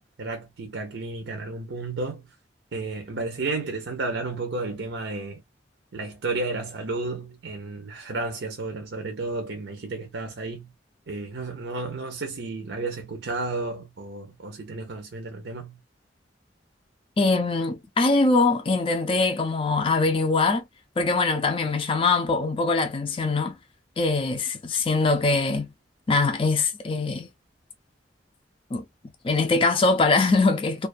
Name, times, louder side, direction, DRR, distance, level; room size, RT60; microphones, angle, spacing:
voice 1, 0.0-2.3 2.7-5.4 5.9-10.7 11.1-15.8, right 3 dB, 75° right, 0.6 m, -32 dB
voice 2, 17.2-20.6 21.0-23.6 24.0-25.7 26.1-27.3 28.7-28.9 29.2-30.9, left 3 dB, 30° left, 0.4 m, -22 dB
2.3 x 2.3 x 2.3 m
head